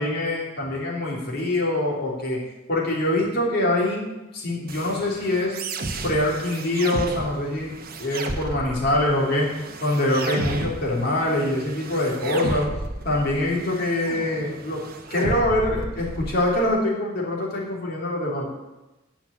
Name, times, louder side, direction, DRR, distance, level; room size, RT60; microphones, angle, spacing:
voice 1, 0.0-2.4 2.7-4.1 4.3-5.6 6.0-7.7 8.0-9.5 9.8-12.7 13.0-14.8 15.1-18.5, left 1 dB, 50° left, -3 dB, 3.2 m, -24 dB
sound 1, 4.7-16.7, right 2 dB, 50° right, 0.9 m, -33 dB
9.7 x 5.8 x 8.4 m, 1.0 s
head